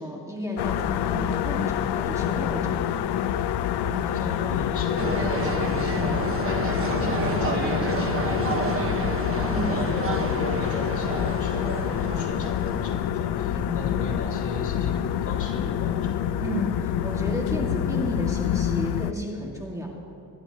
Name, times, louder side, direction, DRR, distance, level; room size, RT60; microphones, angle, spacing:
voice 1, 0.0-3.0 9.5-9.8 13.5-13.9 16.4-19.9, equal, 10° right, -2 dB, 1.8 m, -33 dB
sound 1, 0.6-19.1, left 10 dB, 75° left, 0.6 m, -27 dB
voice 2, 3.8-16.3, left 2 dB, 45° left, -3 dB, 3.4 m, -36 dB
sound 2, 5.0-12.9, right 4 dB, 35° right, 1.2 m, -30 dB
23.5 x 11.5 x 2.9 m, 2.9 s
cardioid pair, 110°, 40 cm